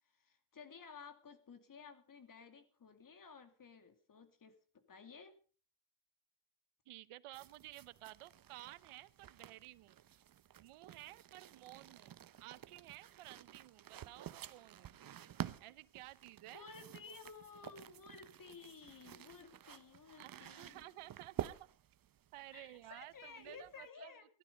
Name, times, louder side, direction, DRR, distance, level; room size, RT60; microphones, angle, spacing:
voice 1, 0.1-5.4 16.5-20.9 22.5-24.3, left 5 dB, 40° left, 9 dB, 2.6 m, -55 dB
voice 2, 6.9-10.0 10.6-15.0 15.6-16.7 17.1-17.2 20.2-21.6 22.3-24.1, right 16 dB, 90° right, 18 dB, 0.9 m, -54 dB
sound 1, 7.3-23.9, right 10 dB, 45° right, 0.8 m, -51 dB
16.5 x 12.5 x 5.3 m, 0.39 s
cardioid pair, 120°, 49 cm